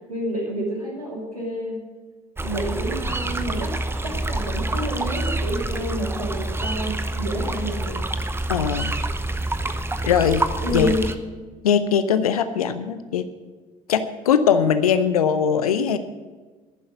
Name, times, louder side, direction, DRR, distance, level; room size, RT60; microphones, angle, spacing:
voice 1, 0.1-1.8 2.4-3.8 4.0-8.0 10.6-11.0, right 1 dB, 85° right, -2 dB, 2.5 m, -29 dB
sound 1, 2.4-11.2, right 2 dB, 10° right, 0.9 m, -27 dB
voice 2, 8.5-8.9 10.1-10.9 11.6-13.3 13.9-16.0, left 7 dB, 75° left, 12 dB, 0.7 m, -21 dB
11.0 x 10.0 x 7.5 m, 1.3 s
figure-of-eight pair, 50°, 19 cm